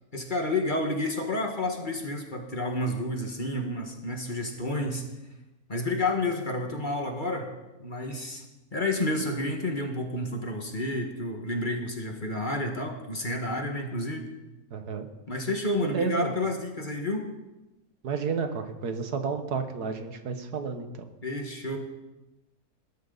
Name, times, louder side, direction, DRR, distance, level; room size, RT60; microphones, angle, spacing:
voice 1, 0.1-5.0 5.7-7.5 7.8-8.4 8.7-14.2 15.3-17.3 21.2-21.8, left 1 dB, 30° left, 2 dB, 1.8 m, -30 dB
voice 2, 14.7-15.1 15.8-16.4 18.0-21.0, right 5 dB, 90° right, 7 dB, 1.8 m, -31 dB
20.0 x 12.5 x 4.1 m, 1.1 s
omnidirectional pair, 1.6 m